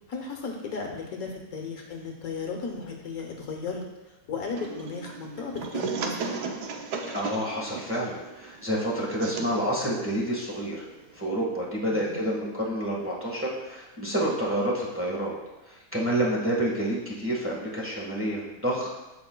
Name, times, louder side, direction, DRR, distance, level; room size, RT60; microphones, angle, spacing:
voice 1, 0.1-3.8 4.3-6.5 11.9-12.3, left 4 dB, 65° left, 1 dB, 1.4 m, -35 dB
sound 1, 4.6-11.2, right 5 dB, 85° right, 1.3 m, -36 dB
voice 2, 7.1-10.8 11.1-15.3 15.7-18.9, right 1 dB, 10° right, -4 dB, 1.3 m, -28 dB
14.0 x 4.7 x 2.2 m, 1.1 s
omnidirectional pair, 1.7 m